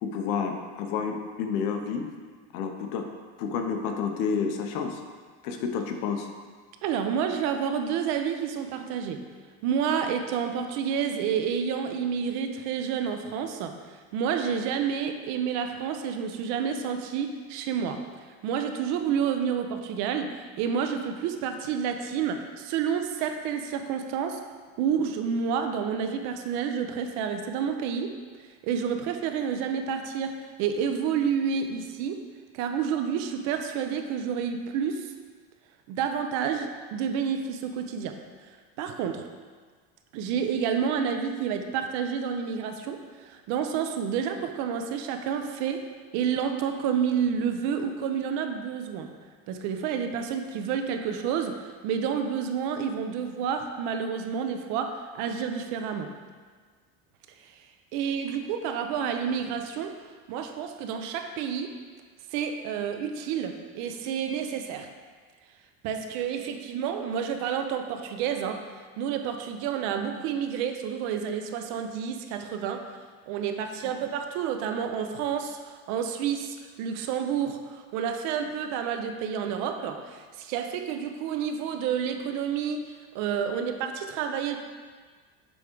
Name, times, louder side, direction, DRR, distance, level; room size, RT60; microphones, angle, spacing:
voice 1, 0.0-2.1 2.5-3.1 3.4-5.0 5.4-6.3, left 6 dB, 65° left, 4 dB, 0.8 m, -30 dB
voice 2, 6.8-9.2 9.6-18.0 18.4-24.4 24.8-28.1 28.6-32.2 32.5-35.1 35.9-38.2 38.8-39.2 40.1-45.8 46.1-49.1 49.5-51.5 51.8-56.1 57.9-59.9 60.3-61.8 62.3-64.9 65.8-68.6 69.0-72.8 73.3-82.8 83.1-84.6, right 7 dB, 65° right, 6 dB, 0.6 m, -29 dB
7.0 x 3.6 x 4.5 m, 1.5 s
cardioid pair, 170°, 30 cm